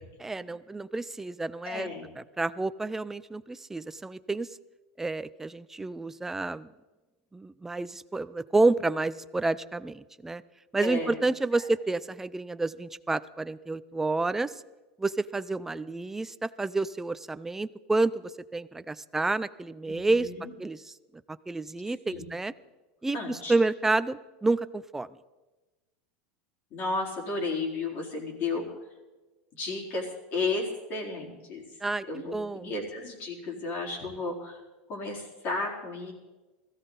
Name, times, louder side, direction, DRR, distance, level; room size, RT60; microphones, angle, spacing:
voice 1, 0.2-1.9 2.4-4.5 5.0-6.7 7.3-10.4 10.7-14.5 15.0-18.1 18.5-20.3 20.6-20.8 21.3-22.5 23.0-25.1 31.8-32.7, right 3 dB, 5° right, 15 dB, 0.4 m, -29 dB
voice 2, 1.6-2.1 10.8-11.2 11.5-11.7 19.9-20.5 22.1-22.2 23.1-23.5 26.7-28.6 29.5-31.6 32.1-34.6 34.9-36.1, left 3 dB, 40° left, 0 dB, 4.2 m, -33 dB
20.5 x 15.0 x 4.0 m, 1.2 s
supercardioid pair, 150°, 5 cm